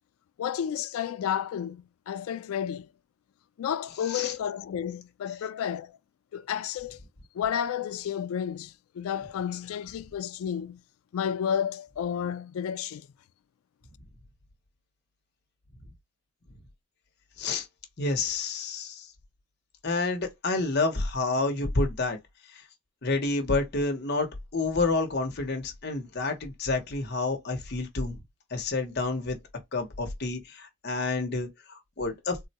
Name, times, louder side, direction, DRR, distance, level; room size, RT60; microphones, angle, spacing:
voice 1, 0.4-2.9 3.6-6.0 6.3-7.0 7.3-10.8 11.1-13.1, left 8 dB, 90° left, 0.3 m, -31 dB
voice 2, 18.0-19.1 19.8-22.2 23.0-28.2 28.5-29.4 29.7-32.4, left 3 dB, 50° left, 0.9 m, -29 dB
3.7 x 2.2 x 2.8 m
head